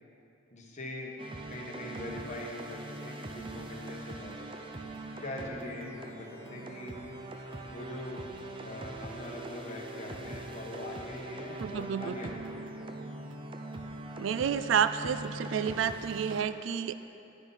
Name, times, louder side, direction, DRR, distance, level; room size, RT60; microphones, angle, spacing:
voice 1, 0.5-1.1 1.5-4.5 5.2-7.0 7.7-8.2 8.6-12.7, left 1 dB, 40° left, -1 dB, 1.3 m, -42 dB
sound 1, 1.2-16.4, right 1 dB, 25° right, 0.6 m, -42 dB
voice 2, 11.6-12.2 14.2-17.0, right 7 dB, 70° right, 13 dB, 0.3 m, -30 dB
10.5 x 9.6 x 4.1 m, 2.8 s
head